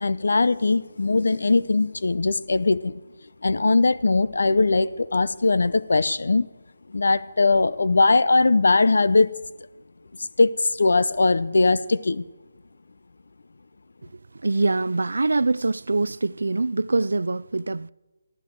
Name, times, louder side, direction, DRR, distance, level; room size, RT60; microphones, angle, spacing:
voice 1, 0.0-3.0 3.4-6.5 6.9-9.3 10.2-12.2, left 3 dB, 75° left, 0.6 m, -20 dB
voice 2, 14.4-17.9, right 3 dB, 90° right, 0.4 m, -24 dB
19.0 x 13.5 x 4.6 m
hypercardioid pair, 170°, 0 cm